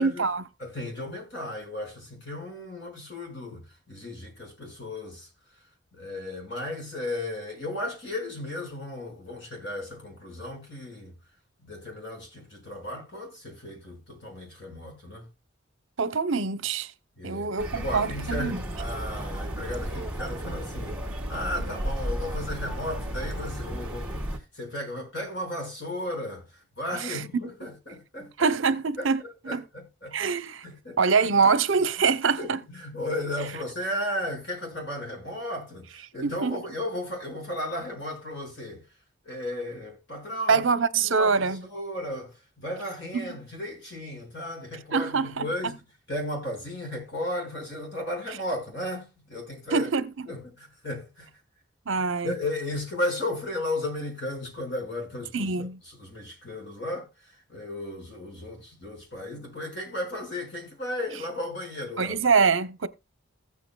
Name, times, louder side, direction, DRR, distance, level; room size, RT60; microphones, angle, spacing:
voice 1, 0.0-0.4 16.0-16.9 17.2-18.6 27.1-27.2 28.4-29.2 29.5-29.6 30.1-30.6 31.0-32.6 36.2-36.5 40.5-41.6 43.1-43.3 44.9-45.5 49.7-50.1 51.9-52.3 55.3-55.8 62.0-62.9, right 5 dB, 70° right, 0.8 m, -24 dB
voice 2, 0.6-5.3 5.9-11.1 11.6-15.3 17.2-28.5 29.0-30.2 30.6-31.0 31.3-31.4 31.8-32.1 32.4-38.8 39.2-40.6 41.0-45.8 46.1-49.9 50.3-51.3 52.0-62.1, left 1 dB, 60° left, 5.3 m, -35 dB
sound 1, 17.6-24.4, right 1 dB, 5° right, 2.0 m, -33 dB
15.5 x 8.5 x 2.3 m
head